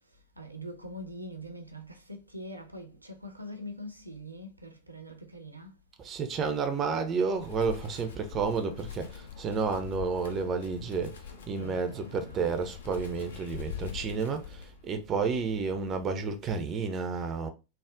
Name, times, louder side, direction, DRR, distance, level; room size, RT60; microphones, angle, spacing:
voice 1, 0.0-5.8 11.6-12.5, equal, 85° right, 0.5 m, -43 dB
voice 2, 6.0-17.5, right 5 dB, 30° right, 0.4 m, -31 dB
Wind, 7.3-15.0, left 8 dB, 65° left, 0.5 m, -43 dB
3.3 x 2.0 x 2.5 m
figure-of-eight pair, 90°, 0 cm